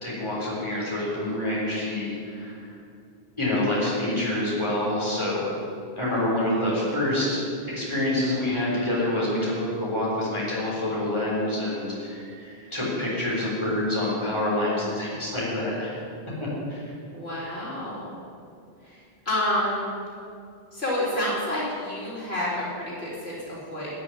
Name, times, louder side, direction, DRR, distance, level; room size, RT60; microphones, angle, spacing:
voice 1, 0.0-2.6 3.4-5.5 6.0-7.4 7.7-16.0 16.7-16.9, left 1 dB, 30° left, -7 dB, 4.0 m, -27 dB
voice 2, 17.1-18.1 18.8-19.0 19.3-19.9 20.7-23.9, left 1 dB, 75° left, -7 dB, 3.7 m, -29 dB
13.0 x 6.4 x 9.9 m, 2.4 s
omnidirectional pair, 1.0 m